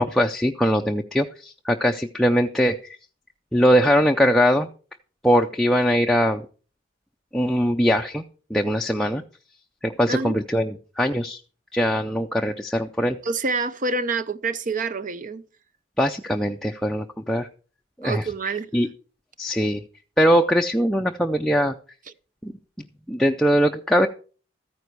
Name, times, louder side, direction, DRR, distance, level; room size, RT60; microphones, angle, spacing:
voice 1, 0.0-2.8 3.5-4.7 5.2-6.4 7.3-8.2 8.5-9.2 9.8-11.4 11.7-13.2 16.0-17.5 18.0-18.2 18.7-18.9 19.4-19.8 20.2-21.7 22.4-22.5 23.1-24.1, equal, ahead, 0.5 m, -21 dB
voice 2, 13.2-15.4 18.0-18.7, right 3 dB, 40° right, 0.6 m, -27 dB
14.0 x 9.6 x 4.6 m
head